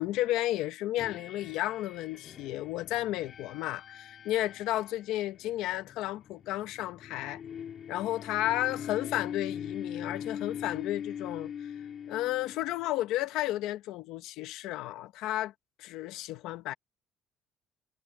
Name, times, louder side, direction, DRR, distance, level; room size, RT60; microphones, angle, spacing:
voice 1, 0.0-7.4 7.9-11.7 12.1-15.5 15.8-16.7, left 15 dB, 65° left, 1.1 m, -33 dB
sound 1, 1.0-13.0, left 8 dB, 35° left, 3.3 m, -42 dB
cardioid pair, 175°, 0 cm